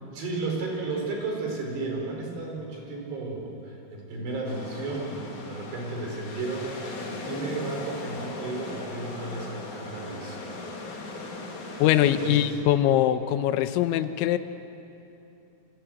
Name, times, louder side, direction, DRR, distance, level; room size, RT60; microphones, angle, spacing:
voice 1, 0.1-10.5 11.6-11.8 12.2-12.5, right 3 dB, 55° right, 0 dB, 6.8 m, -33 dB
sound 1, 4.5-12.3, left 2 dB, 45° left, 3.6 m, -38 dB
voice 2, 11.8-14.4, left 12 dB, 80° left, 10 dB, 3.0 m, -22 dB
27.0 x 26.0 x 7.9 m, 2.9 s
omnidirectional pair, 5.8 m